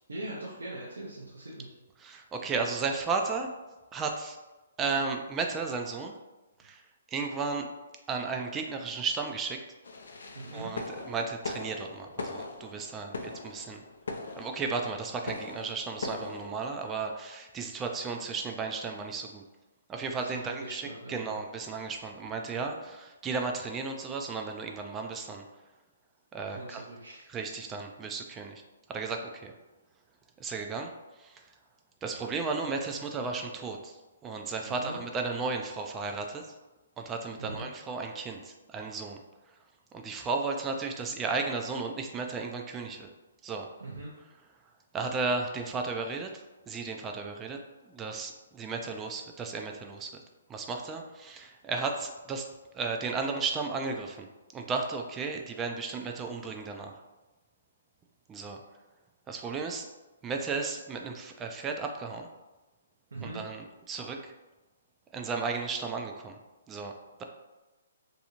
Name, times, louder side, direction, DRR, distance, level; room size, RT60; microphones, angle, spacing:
voice 1, 0.1-1.7 10.3-10.7 20.2-21.4 26.5-27.3 34.7-35.0 37.4-37.7 43.8-44.1 63.1-63.4, right 1 dB, 85° right, -5 dB, 0.6 m, -41 dB
voice 2, 2.0-3.5 3.9-4.4 4.8-6.1 6.6-6.8 7.1-7.7 8.1-9.6 10.5-13.8 14.4-19.4 19.9-25.4 26.3-26.8 27.3-28.6 28.9-29.5 30.4-30.9 31.2-31.4 32.0-33.9 34.2-36.4 37.0-39.2 39.9-43.1 43.4-43.7 44.9-50.2 50.5-52.5 52.7-54.3 54.5-56.9 58.3-58.6 59.3-59.9 60.2-62.3 63.2-64.3 65.1-66.4 66.7-66.9, right 4 dB, 15° right, 3 dB, 0.3 m, -34 dB
sound 1, 9.8-16.7, left 3 dB, 75° left, 0.4 m, -40 dB
2.6 x 2.3 x 2.9 m, 1.1 s
hypercardioid pair, 140°, 0 cm